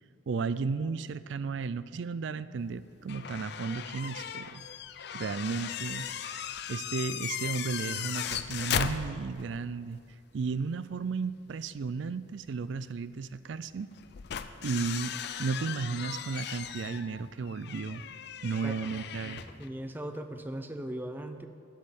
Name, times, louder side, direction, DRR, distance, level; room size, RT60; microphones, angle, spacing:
voice 1, 0.3-4.6 5.1-6.1 6.7-10.0 10.3-13.9 14.6-18.0 18.4-19.4, right 4 dB, 65° right, 15 dB, 0.4 m, -34 dB
sound 1, 3.1-9.6 9.9-10.0 12.0-12.1 13.9-19.7, left 8 dB, 55° left, 0.5 m, -37 dB
voice 2, 19.2-21.5, right 1 dB, 10° right, 7 dB, 0.5 m, -39 dB
12.0 x 5.4 x 9.0 m, 2.5 s
head